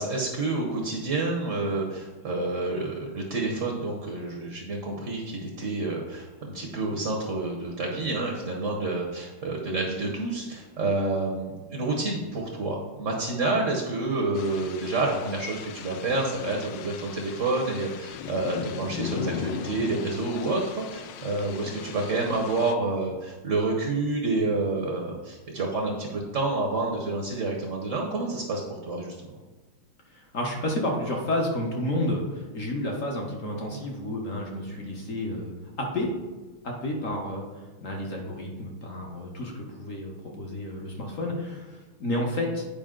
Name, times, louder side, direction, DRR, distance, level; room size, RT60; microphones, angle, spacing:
voice 1, 0.0-29.3, right 2 dB, 50° right, 0 dB, 1.0 m, -29 dB
sound 1, 14.3-22.7, left 8 dB, 75° left, 1.1 m, -38 dB
voice 2, 30.1-36.1 36.6-42.6, left 1 dB, 45° left, 0 dB, 1.2 m, -31 dB
8.7 x 5.0 x 3.8 m, 1.3 s
omnidirectional pair, 2.3 m